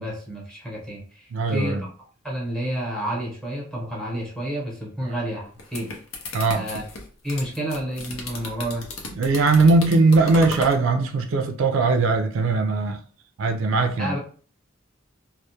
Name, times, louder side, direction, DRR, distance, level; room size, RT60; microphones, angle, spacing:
voice 1, 0.0-1.9 2.2-5.9 6.5-6.8 7.2-8.8 14.0-14.2, right 1 dB, 5° left, 0.8 m, -30 dB
voice 2, 1.3-1.8 6.3-6.7 9.2-13.0 13.4-14.1, right 3 dB, 70° right, 0.3 m, -20 dB
sound 1, 5.4-10.8, left 2 dB, 80° left, 0.6 m, -35 dB
2.2 x 2.0 x 2.8 m
head